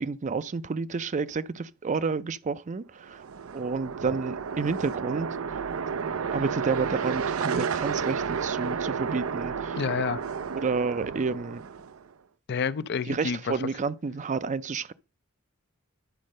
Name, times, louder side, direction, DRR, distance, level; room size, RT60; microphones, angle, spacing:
voice 1, 0.0-3.2 3.5-5.6 6.3-9.8 10.5-11.6 13.1-14.9, right 4 dB, 35° right, 0.5 m, -30 dB
sound 1, 3.0-12.1, right 6 dB, 85° right, 0.5 m, -31 dB
voice 2, 9.8-10.2 12.5-13.5, left 6 dB, 55° left, 0.5 m, -29 dB
10.5 x 4.2 x 6.5 m
head